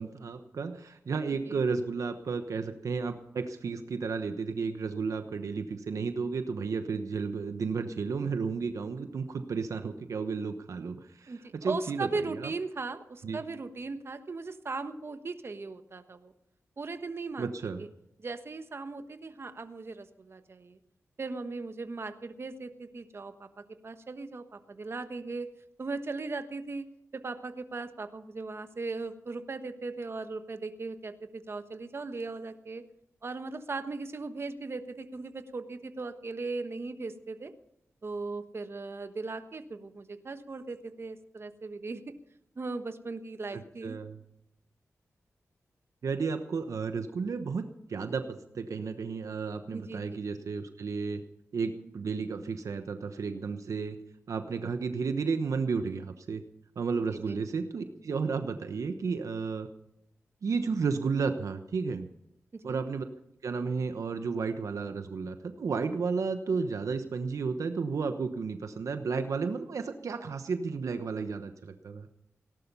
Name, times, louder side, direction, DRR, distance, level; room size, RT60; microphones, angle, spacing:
voice 1, 0.0-12.5 13.2-13.4 17.4-17.8 43.5-44.2 46.0-51.2 51.5-54.0 54.3-56.4 56.8-59.7 60.4-62.1 62.6-63.0 63.4-72.1, right 5 dB, 75° right, 8 dB, 1.1 m, -33 dB
voice 2, 11.3-16.3 16.8-17.5 18.2-20.8 21.2-25.5 25.8-26.9 27.1-32.8 33.2-37.5 38.0-42.1 42.6-44.0 49.7-50.2 57.3-57.4 62.7-62.8, right 3 dB, 50° right, 9 dB, 1.3 m, -38 dB
18.0 x 11.5 x 5.6 m, 0.78 s
cardioid pair, 65°, 5 cm